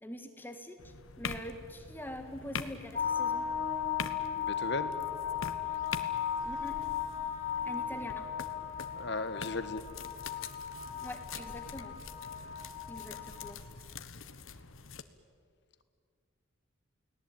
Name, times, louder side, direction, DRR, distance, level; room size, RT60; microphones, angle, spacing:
voice 1, 0.0-3.5 6.4-6.8 7.7-8.3 11.0-11.9 12.9-13.6, left 1 dB, 10° left, 6 dB, 1.7 m, -44 dB
sound 1, 0.8-15.0, left 5 dB, 75° left, 1.3 m, -45 dB
sound 2, 2.9-13.5, left 8 dB, 35° left, 2.0 m, -36 dB
voice 2, 4.3-4.9 8.9-9.8, left 3 dB, 55° left, 11 dB, 1.5 m, -36 dB
Wind instrument woodwind instrument, 4.8-9.4, right 1 dB, 55° right, 5.3 m, -56 dB
30.0 x 18.5 x 9.1 m, 2.1 s
head